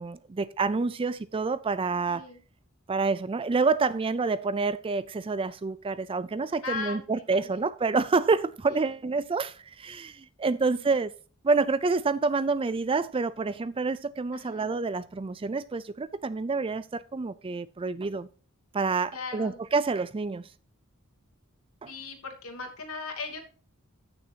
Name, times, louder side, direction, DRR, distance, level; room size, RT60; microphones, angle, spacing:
voice 1, 0.0-2.2 2.9-11.1 11.4-18.3 18.7-20.5 21.8-21.9, right 4 dB, 25° right, 0.4 m, -28 dB
voice 2, 2.1-2.4 6.6-7.0 7.3-7.6 10.6-10.9 14.3-14.7 19.1-19.6 21.9-23.4, left 4 dB, 70° left, 2.8 m, -38 dB
15.0 x 6.8 x 2.8 m
head